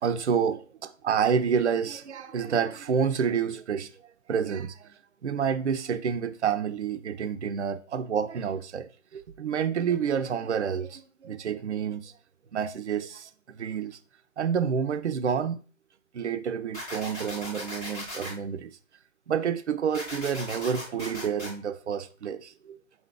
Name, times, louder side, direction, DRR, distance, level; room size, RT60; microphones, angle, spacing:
voice 1, 0.0-4.9 5.2-12.1 12.5-14.0 14.4-15.6 16.1-18.8 19.3-22.8, right 7 dB, 55° right, 0.5 m, -29 dB
sound 1, 16.7-18.3 19.9-21.5, left 1 dB, ahead, 0.6 m, -38 dB
5.0 x 2.7 x 3.5 m
figure-of-eight pair, 140°, 41 cm